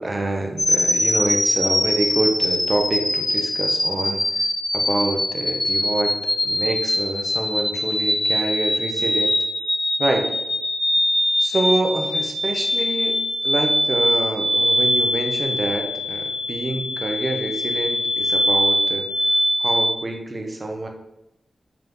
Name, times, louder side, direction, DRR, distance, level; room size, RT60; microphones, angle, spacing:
voice 1, 0.0-4.2 4.7-6.1 6.4-9.3 10.0-10.3 11.4-13.2 13.4-19.1 19.6-20.9, right 2 dB, 30° right, 3 dB, 1.0 m, -26 dB
sound 1, 0.6-19.9, left 1 dB, 25° left, 1.1 m, -22 dB
5.7 x 5.5 x 3.8 m, 0.88 s
wide cardioid pair, 150°, 0 cm